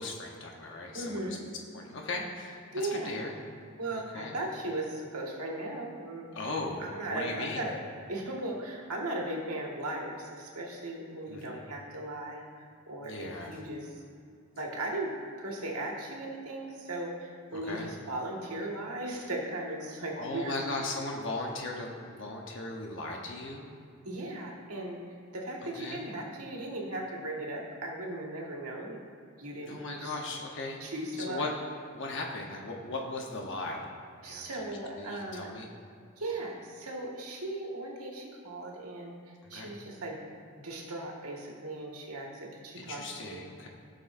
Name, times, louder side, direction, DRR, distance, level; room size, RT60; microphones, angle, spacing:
voice 1, 0.0-1.4 1.7-3.3 3.9-4.4 6.3-7.6 11.3-11.6 13.0-13.6 17.5-17.9 20.2-23.7 25.6-26.1 29.6-30.8 31.2-31.6 31.9-33.9 34.2-34.6 35.0-35.7 39.5-39.7 42.8-43.7, left 2 dB, 55° left, 0 dB, 0.9 m, -38 dB
voice 2, 0.9-1.4 2.7-3.2 3.8-6.5 6.8-7.7 8.1-13.9 14.6-15.1 15.4-20.5 24.0-25.0 25.3-29.0 29.4-30.1 30.8-31.5 34.2-35.5 36.2-40.2 40.6-43.4, right 1 dB, 90° right, -1 dB, 1.7 m, -37 dB
16.0 x 6.3 x 2.6 m, 2.5 s
head